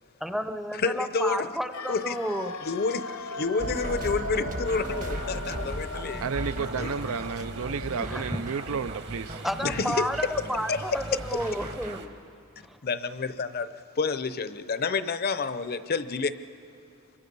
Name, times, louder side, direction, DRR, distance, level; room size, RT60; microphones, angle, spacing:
voice 1, 0.2-2.6 8.0-8.4 9.3-12.2 12.6-12.8, equal, ahead, 9 dB, 0.6 m, -32 dB
voice 2, 0.8-1.5 1.9-2.2 2.6-6.2 6.8-6.9 9.6-10.1 10.7-11.0 11.3-11.4 12.8-13.7 14.0-16.3, left 4 dB, 45° left, 13 dB, 0.7 m, -29 dB
sound 1, 1.7-11.7 11.9-12.0, left 3 dB, 75° left, 1.0 m, -40 dB
sound 2, 3.6-12.2, right 1 dB, 35° right, 1.1 m, -37 dB
sound 3, 4.6-12.1, right 4 dB, 55° right, 1.5 m, -47 dB
voice 3, 6.2-9.4, right 6 dB, 75° right, 14 dB, 0.5 m, -32 dB
25.5 x 23.0 x 5.4 m, 2.5 s
head